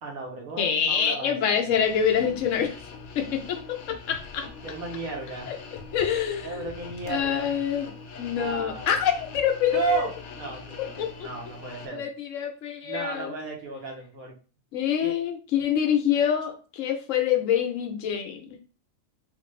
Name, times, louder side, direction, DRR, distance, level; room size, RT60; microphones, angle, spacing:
voice 1, 0.0-1.7 4.6-5.5 6.4-7.6 8.3-9.1 9.7-12.0 12.8-14.3 15.0-15.1, right 5 dB, 80° right, 0 dB, 1.4 m, -34 dB
voice 2, 0.6-2.7 3.1-4.5 5.5-5.6 5.9-6.7 7.1-7.9 8.2-10.1 11.0-11.3 11.9-13.3 14.7-18.6, left 8 dB, 65° left, 5 dB, 1.0 m, -26 dB
sound 1, 1.7-11.9, left 4 dB, 85° left, 1.1 m, -43 dB
3.7 x 2.4 x 3.2 m, 0.37 s
omnidirectional pair, 1.5 m